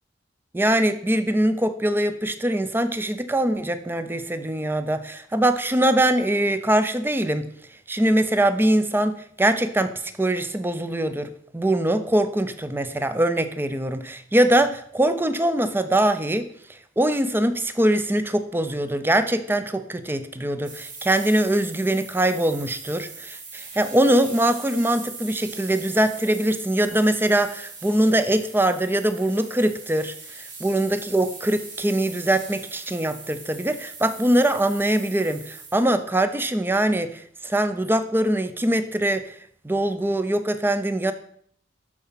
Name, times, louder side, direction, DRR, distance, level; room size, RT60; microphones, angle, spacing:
voice 1, 0.5-7.5 7.9-39.4 39.6-41.1, right 1 dB, 10° right, 10 dB, 0.6 m, -22 dB
sound 1, 20.6-36.0, right 4 dB, 80° right, 3.1 m, -41 dB
12.5 x 4.2 x 5.8 m, 0.64 s
head